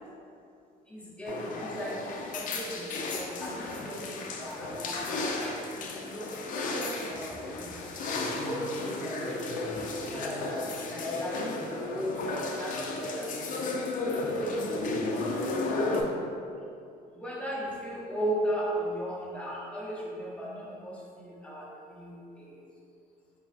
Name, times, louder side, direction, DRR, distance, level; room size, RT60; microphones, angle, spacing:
voice 1, 0.9-2.0 2.3-4.0 4.4-7.7 8.4-9.7 10.0-13.3 14.2-14.7 15.2-15.4 15.7-16.2 17.2-21.6 21.9-22.6, equal, 5° left, -5 dB, 0.9 m, -37 dB
sound 1, 1.3-16.0, left 2 dB, 50° left, 0.5 m, -34 dB
4.3 x 2.3 x 4.0 m, 2.6 s
cardioid pair, 110°, 17 cm